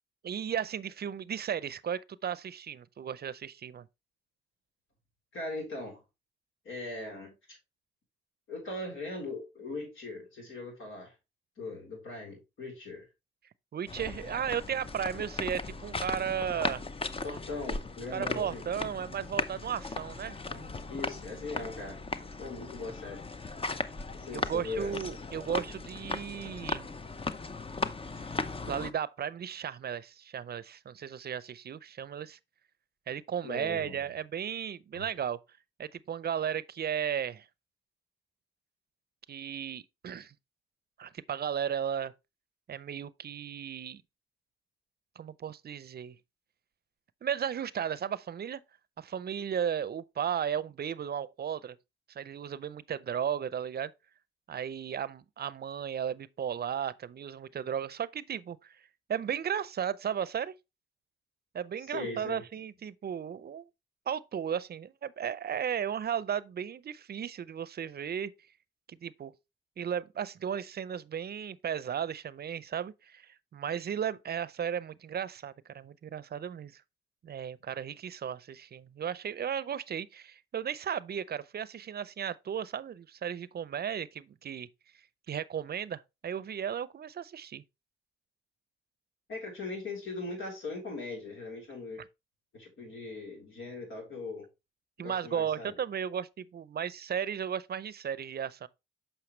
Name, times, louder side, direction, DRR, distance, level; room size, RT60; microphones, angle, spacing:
voice 1, 0.2-3.9 13.7-16.8 18.1-20.7 24.3-26.9 28.1-28.2 28.7-32.4 33.1-35.4 35.8-37.5 39.3-40.3 41.0-42.1 42.7-44.0 45.2-46.2 47.2-48.6 49.0-51.8 52.1-53.9 54.5-58.8 59.1-60.5 61.5-63.6 64.1-68.3 68.9-69.3 69.8-76.8 77.2-84.7 85.3-87.6 95.0-98.7, right 8 dB, 50° right, 0.5 m, -35 dB
voice 2, 5.3-6.0 6.7-7.6 8.5-11.1 11.6-13.1 17.2-18.7 20.9-22.0 22.4-23.2 24.1-24.9 33.4-34.0 34.9-35.0 61.9-62.4 89.3-92.0 92.5-94.5 95.0-95.8, left 3 dB, 80° left, 3.7 m, -40 dB
sound 1, 13.9-28.9, left 3 dB, 25° left, 0.6 m, -37 dB
7.0 x 5.6 x 3.1 m
cardioid pair, 75°, 20 cm